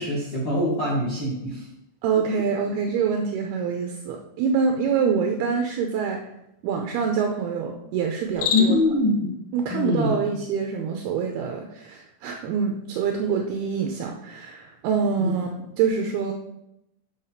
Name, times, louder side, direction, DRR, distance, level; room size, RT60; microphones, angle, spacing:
voice 1, 0.0-1.6 8.5-9.3 9.7-10.2 15.2-15.3, left 2 dB, 45° left, -6 dB, 1.4 m, -23 dB
voice 2, 2.0-6.2 6.6-8.8 9.5-15.5 15.8-16.3, right 6 dB, 85° right, 2 dB, 2.2 m, -25 dB
Cricket, 8.2-9.0, left 6 dB, 80° left, 3.3 m, -27 dB
8.1 x 4.9 x 5.7 m, 0.83 s
omnidirectional pair, 5.5 m